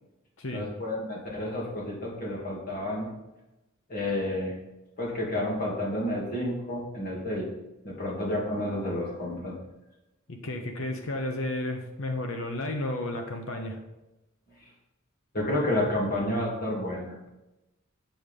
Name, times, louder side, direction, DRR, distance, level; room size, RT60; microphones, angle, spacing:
voice 1, 0.5-3.1 3.9-4.5 5.0-7.5 7.8-9.6 15.3-17.2, left 1 dB, 45° left, -3 dB, 2.7 m, -30 dB
voice 2, 10.3-13.8, left 1 dB, 65° left, 4 dB, 1.0 m, -32 dB
8.0 x 7.0 x 5.3 m, 0.99 s
head